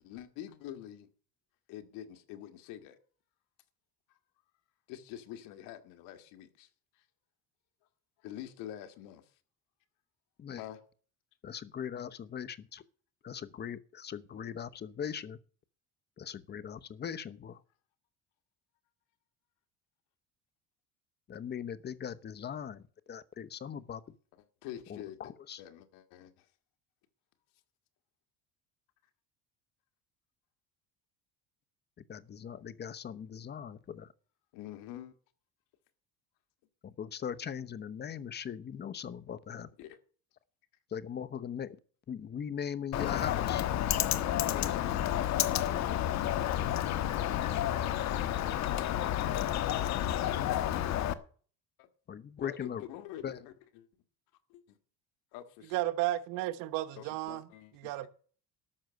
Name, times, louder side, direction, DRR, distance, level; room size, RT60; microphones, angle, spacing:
voice 1, 0.0-1.1 1.7-3.0 4.9-6.7 8.2-9.2 10.6-10.8 24.6-25.3 25.6-26.5 34.5-35.1 39.8-40.0 44.1-44.7 46.4-47.1 48.7-49.0 49.2-49.4 51.8-51.9 52.4-53.9 54.5-54.8 55.3-55.7 57.0-58.1, left 12 dB, 80° left, 1.8 m, -46 dB
voice 2, 11.4-12.8 13.2-15.4 16.2-17.6 21.3-24.1 24.9-25.6 32.0-34.1 36.8-39.7 40.9-41.8 42.1-43.6 52.1-52.8 53.2-53.4, left 8 dB, 30° left, 1.0 m, -40 dB
Bird, 42.9-51.1, left 12 dB, 55° left, 1.2 m, -30 dB
voice 3, 55.6-58.1, right 15 dB, 85° right, 1.3 m, -34 dB
13.0 x 6.2 x 9.3 m
cardioid pair, 125°, 32 cm